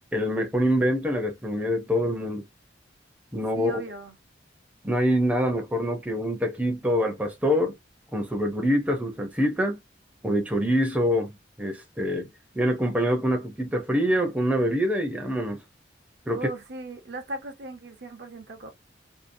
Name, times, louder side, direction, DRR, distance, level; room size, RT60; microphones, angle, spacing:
voice 1, 0.1-2.4 3.3-3.7 4.8-7.7 8.1-9.8 10.2-11.3 11.6-12.3 12.5-15.6 16.3-16.4, equal, 10° right, 0.5 m, -25 dB
voice 2, 3.5-4.2 16.3-18.7, right 2 dB, 60° right, 0.7 m, -37 dB
2.7 x 2.0 x 2.5 m
head